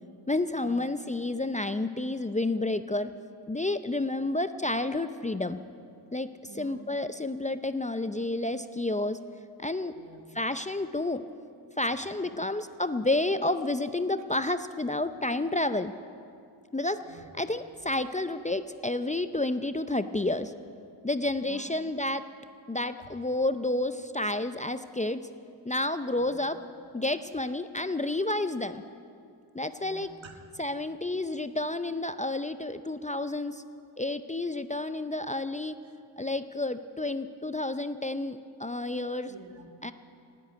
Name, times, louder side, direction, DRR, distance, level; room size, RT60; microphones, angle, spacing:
voice 1, 0.3-3.1 3.5-5.6 6.1-6.3 6.6-9.2 9.6-9.9 10.3-11.2 11.8-15.9 16.7-17.0 17.4-20.5 21.0-22.2 22.7-25.2 25.6-26.6 26.9-28.8 29.5-30.1 30.6-33.6 34.0-35.8 36.2-39.3 39.8-39.9, left 2 dB, 15° left, 11 dB, 0.5 m, -30 dB
voice 2, 6.5-6.8 9.9-10.2 12.2-12.4 17.0-17.4 21.4-21.7 23.0-23.1 26.1-26.4 29.8-30.4 39.3-39.7, right 4 dB, 75° right, 4 dB, 1.8 m, -50 dB
18.5 x 8.5 x 9.1 m, 2.4 s
cardioid pair, 65°, 46 cm